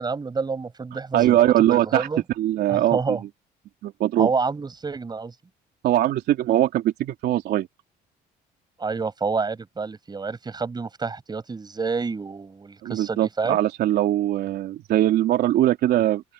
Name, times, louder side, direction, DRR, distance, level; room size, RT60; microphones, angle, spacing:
voice 1, 0.0-2.2 2.7-3.2 4.2-5.3 8.8-13.6, right 4 dB, 25° right, 7.6 m, -28 dB
voice 2, 1.1-2.1 2.4-3.2 3.8-4.3 5.8-7.7 12.8-16.2, right 13 dB, 70° right, 3.5 m, -21 dB
open air
cardioid pair, 110°, 17 cm